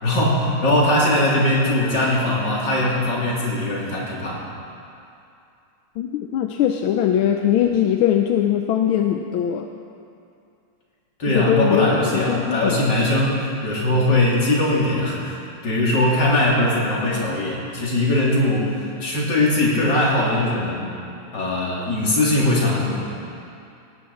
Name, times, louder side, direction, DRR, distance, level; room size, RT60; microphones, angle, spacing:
voice 1, 0.0-4.4 11.2-20.9 21.3-23.0, left 1 dB, 55° left, -5 dB, 3.6 m, -20 dB
voice 2, 6.0-9.7 11.3-12.8, left 10 dB, 80° left, 5 dB, 1.5 m, -21 dB
18.0 x 17.0 x 4.3 m, 2.6 s
omnidirectional pair, 2.3 m